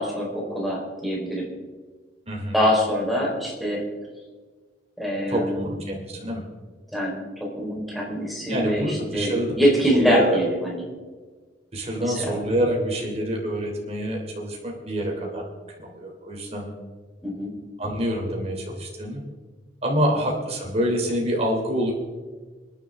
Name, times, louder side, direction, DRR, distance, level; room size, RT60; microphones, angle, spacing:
voice 1, 0.0-1.5 2.5-3.9 5.0-5.8 6.9-10.9 12.0-12.4 17.2-17.6 20.1-20.2, equal, ahead, -3 dB, 4.2 m, -24 dB
voice 2, 5.3-6.4 8.5-9.5 9.9-10.4 11.7-15.5 15.8-16.7 17.8-19.2 19.8-21.9, equal, 35° right, -1 dB, 3.1 m, -26 dB
26.5 x 10.5 x 3.6 m, 1.4 s
head